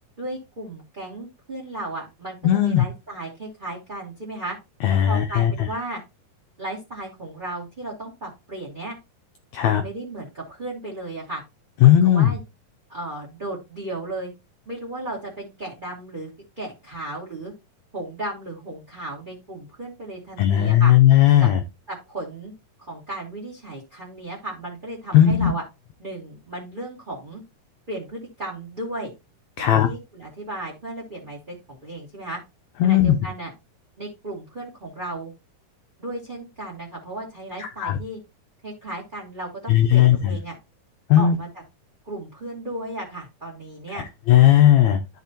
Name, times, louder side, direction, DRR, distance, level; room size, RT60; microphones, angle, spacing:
voice 1, 0.2-2.4 2.6-4.6 5.0-6.0 6.6-9.0 9.6-11.4 11.8-12.4 12.9-14.3 14.7-16.3 16.6-17.5 17.9-20.9 21.4-21.5 21.9-22.5 22.8-25.6 26.0-27.4 27.9-29.1 29.6-32.4 32.8-33.5 34.0-35.3 36.0-38.2 38.6-40.5 41.2-41.6 42.0-44.1, right 1 dB, 15° right, -3 dB, 2.4 m, -35 dB
voice 2, 2.4-2.8 4.8-5.7 9.5-9.8 11.8-12.3 20.4-21.6 25.1-25.5 29.6-29.9 32.8-33.2 37.6-38.0 39.7-40.4 41.1-41.4 44.3-45.0, left 11 dB, 75° left, 6 dB, 1.7 m, -16 dB
13.0 x 5.0 x 2.9 m, 0.24 s
omnidirectional pair, 3.8 m